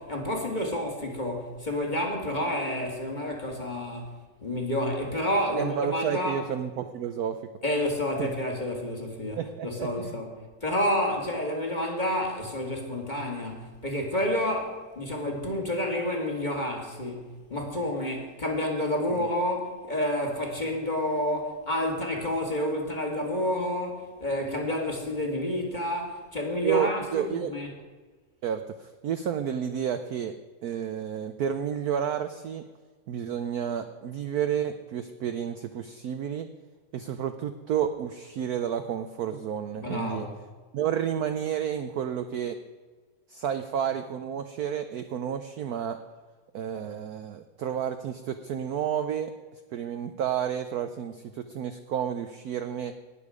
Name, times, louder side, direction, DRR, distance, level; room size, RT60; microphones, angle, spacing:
voice 1, 0.0-6.4 7.6-27.7 39.8-40.3, left 1 dB, 25° left, 1 dB, 1.9 m, -29 dB
voice 2, 5.6-7.4 8.2-8.3 9.4-10.2 26.6-27.5 28.4-30.3 30.6-32.6 33.1-36.5 36.9-40.3 40.7-42.6 43.3-46.0 46.5-52.9, right 9 dB, 70° right, 8 dB, 0.9 m, -31 dB
19.0 x 7.1 x 4.9 m, 1.4 s
omnidirectional pair, 2.2 m